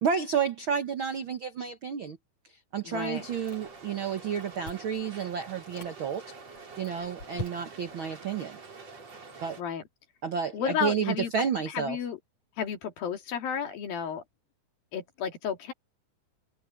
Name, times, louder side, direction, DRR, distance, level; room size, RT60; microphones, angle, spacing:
voice 1, 0.0-2.2 2.7-6.2 6.8-8.6 9.4-9.6 10.2-12.0, right 7 dB, 80° right, 1.1 m, -31 dB
voice 2, 2.8-3.2 9.6-9.8 10.5-11.3 11.7-12.2 12.6-14.2 14.9-15.7, left 7 dB, 75° left, 4.4 m, -32 dB
Chewing mastication, 3.0-3.9 4.2-5.0 5.5-6.0 6.5-8.0, left 1 dB, 45° left, 9.1 m, -43 dB
sound 1, 3.1-9.6, right 4 dB, 45° right, 5.2 m, -47 dB
open air
omnidirectional pair, 4.2 m